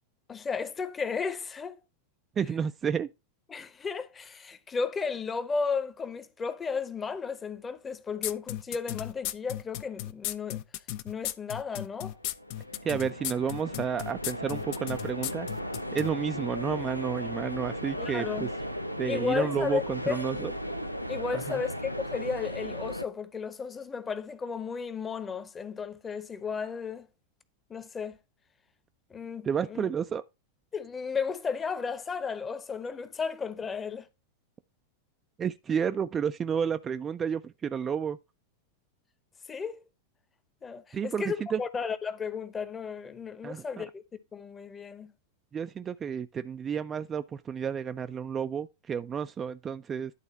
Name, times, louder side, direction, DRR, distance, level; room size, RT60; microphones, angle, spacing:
voice 1, 0.3-1.8 3.5-10.6 11.0-12.2 18.0-18.5 19.1-20.2 21.1-27.1 27.7-28.2 29.1-29.9 30.7-34.1 39.5-39.8 40.6-44.0 44.3-45.1, left 5 dB, 20° left, 0.9 m, -34 dB
voice 2, 2.4-3.1 12.8-15.5 15.9-18.5 19.0-20.5 21.3-21.6 29.4-30.2 35.4-38.2 40.9-41.6 43.4-43.8 45.5-50.1, right 7 dB, 20° right, 0.4 m, -31 dB
sound 1, 8.2-16.1, left 14 dB, 45° left, 0.6 m, -35 dB
sound 2, 12.2-23.0, equal, 90° left, 0.6 m, -36 dB
11.0 x 4.0 x 4.0 m
figure-of-eight pair, 90°, 0 cm